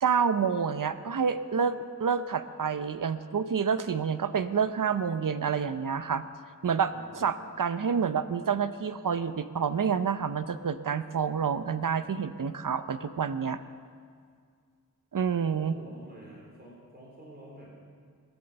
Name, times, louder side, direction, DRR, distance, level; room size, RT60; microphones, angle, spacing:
voice 1, 0.0-6.2 6.6-13.6 15.1-15.8, right 6 dB, 70° right, 11 dB, 0.7 m, -28 dB
voice 2, 6.9-7.4 15.5-17.7, right 1 dB, 30° right, -4 dB, 4.0 m, -49 dB
20.5 x 8.8 x 6.8 m, 2.1 s
wide cardioid pair, 75°, 34 cm